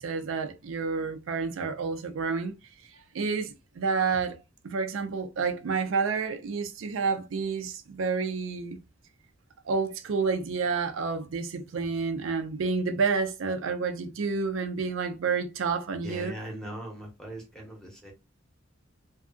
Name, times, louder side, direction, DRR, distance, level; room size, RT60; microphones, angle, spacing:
voice 1, 0.0-2.5 3.1-4.4 4.6-8.8 9.7-16.4, right 5 dB, 75° right, 0.4 m, -29 dB
voice 2, 16.0-18.1, right 1 dB, 5° left, 0.9 m, -40 dB
2.6 x 2.4 x 2.4 m
head